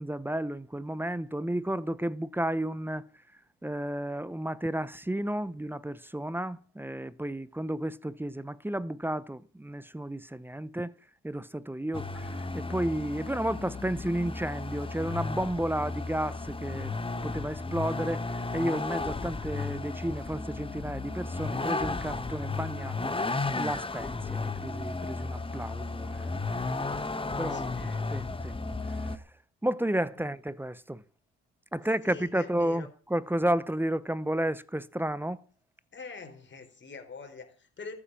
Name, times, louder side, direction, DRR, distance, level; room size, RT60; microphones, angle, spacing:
voice 1, 0.0-3.0 3.6-10.9 11.2-26.3 26.6-26.9 27.4-29.2 29.6-31.0 31.7-35.4, right 1 dB, 5° right, 0.7 m, -32 dB
Vehicle, 11.9-29.2, left 3 dB, 15° left, 1.3 m, -34 dB
voice 2, 27.5-28.1 30.2-30.3 32.0-32.9 35.9-37.9, left 4 dB, 40° left, 4.2 m, -45 dB
14.0 x 8.7 x 7.4 m
cardioid pair, 90°, 30 cm